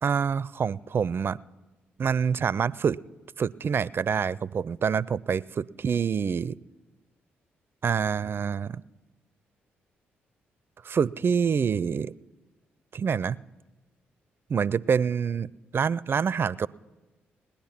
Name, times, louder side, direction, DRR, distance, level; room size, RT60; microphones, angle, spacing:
voice 1, 0.0-1.4 2.0-3.0 3.4-6.6 7.8-8.8 10.8-12.1 12.9-13.4 14.5-16.7, right 6 dB, 45° right, 22 dB, 0.4 m, -26 dB
19.5 x 10.0 x 5.8 m, 1.2 s
hypercardioid pair, 45°, 5 cm